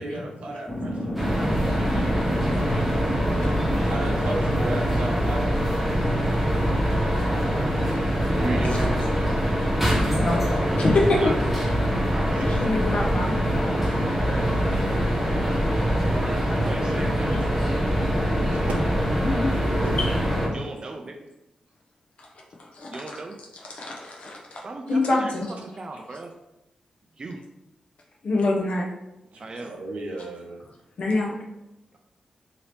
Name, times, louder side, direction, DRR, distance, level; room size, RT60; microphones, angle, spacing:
voice 1, 0.0-2.1 3.8-5.9 13.6-14.7 18.2-18.7 19.5-20.5 29.3-30.6, right 2 dB, 80° right, 0 dB, 0.7 m, -35 dB
sound 1, 0.7-19.6, equal, 20° left, 1.0 m, -37 dB
sound 2, 1.2-20.5, equal, 5° right, 1.0 m, -24 dB
voice 2, 8.3-9.0 9.7-10.3 11.2-11.4 12.1-12.5 16.6-17.4 20.5-21.3 22.9-23.4 24.6-26.3 27.2-27.4 29.4-29.7, right 2 dB, 40° right, 3 dB, 0.4 m, -36 dB
voice 3, 10.8-11.2 12.3-13.8 19.2-19.5 20.0-20.1 22.8-22.9 23.7-24.6 24.9-25.5 28.2-28.8 31.0-31.3, left 2 dB, 65° left, -1 dB, 0.6 m, -25 dB
2.8 x 2.7 x 3.2 m, 0.93 s
cardioid pair, 85°, 2 cm